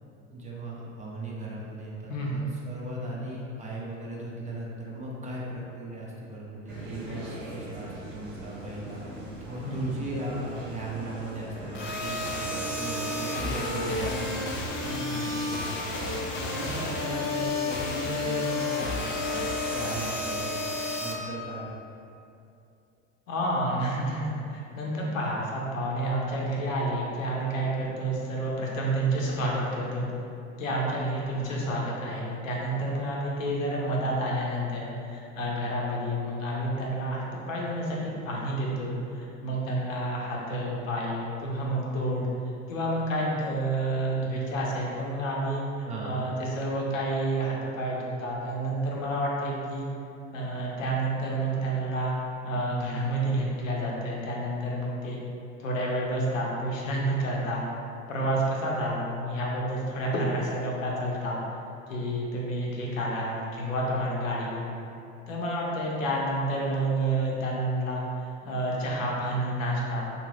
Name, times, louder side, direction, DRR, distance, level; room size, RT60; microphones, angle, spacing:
voice 1, 0.3-16.0 16.5-20.6 21.0-21.7 45.9-46.1, right 1 dB, 20° right, -4 dB, 0.5 m, -37 dB
voice 2, 2.1-2.5 3.0-3.1 9.6-9.9 23.3-30.1 30.6-42.3 42.7-49.9 50.3-52.1 52.4-55.2 55.6-57.7 58.1-61.4 61.9-64.8 65.3-70.0, right 1 dB, 80° left, -3 dB, 0.7 m, -29 dB
sound 1, 6.7-17.4, right 1 dB, 75° right, 1.0 m, -41 dB
sound 2, 11.7-21.1, left 2 dB, 30° left, 0.5 m, -31 dB
2.8 x 2.6 x 3.2 m, 2.6 s
hypercardioid pair, 80°, 39 cm